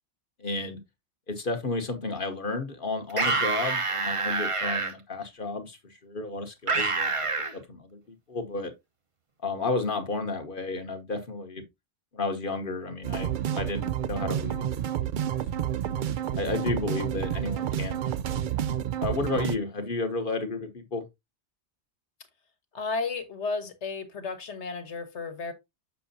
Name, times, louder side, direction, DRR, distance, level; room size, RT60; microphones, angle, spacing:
voice 1, 0.4-0.8 1.3-5.8 6.0-7.1 7.5-8.0 8.3-8.7 9.4-11.6 12.1-14.8 15.6-15.7 16.4-21.0, left 3 dB, 50° left, 1.2 m, -32 dB
sound 1, 3.1-4.9 6.7-7.5, right 3 dB, 30° right, 0.9 m, -27 dB
sound 2, 13.0-19.6, right 10 dB, 60° right, 0.5 m, -30 dB
voice 2, 22.7-25.5, left 4 dB, 85° left, 1.5 m, -33 dB
6.9 x 6.0 x 2.6 m
omnidirectional pair, 1.2 m